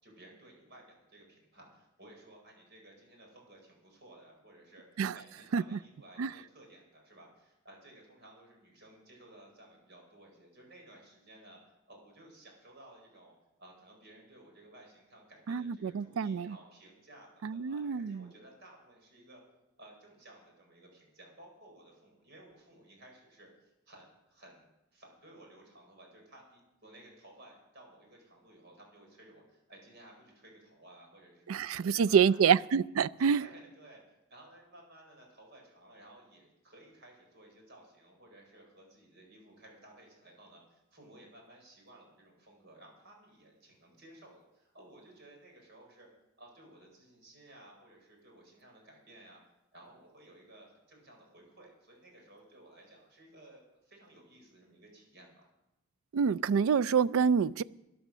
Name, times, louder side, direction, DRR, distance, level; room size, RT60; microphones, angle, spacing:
voice 1, 0.0-4.8 5.1-11.6 11.9-19.4 19.8-32.5 33.2-34.0 34.3-46.1 46.4-49.4 49.7-55.5, right 1 dB, 55° right, 4.7 m, -56 dB
voice 2, 15.5-16.5 17.4-18.3 31.5-33.4 56.1-57.6, right 6 dB, 85° right, 0.4 m, -27 dB
13.0 x 11.5 x 6.1 m
head